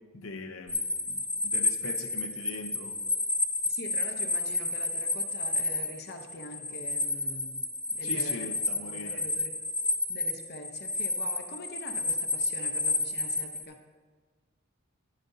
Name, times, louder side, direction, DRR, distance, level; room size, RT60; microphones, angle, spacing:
voice 1, 0.1-3.0 8.0-9.3, left 3 dB, 85° left, 0.7 m, -41 dB
sound 1, 0.7-13.6, left 2 dB, 5° left, 0.4 m, -31 dB
voice 2, 3.7-7.6 7.9-9.6 10.1-13.8, left 2 dB, 50° left, 0.7 m, -44 dB
11.5 x 10.0 x 2.7 m
head